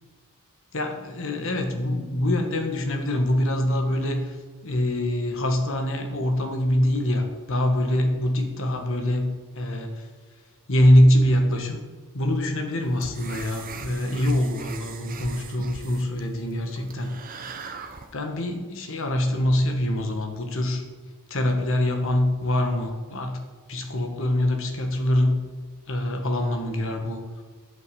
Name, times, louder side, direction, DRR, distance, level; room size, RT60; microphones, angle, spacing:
voice 1, 0.7-4.4 4.6-10.1 10.7-11.8 12.1-17.1 18.1-20.8 21.3-23.4 23.7-25.4 25.9-27.2, left 1 dB, 65° left, 4 dB, 1.8 m, -24 dB
sound 1, 12.8-18.1, right 4 dB, 40° right, 1.0 m, -40 dB
11.0 x 8.3 x 7.0 m, 1.5 s
head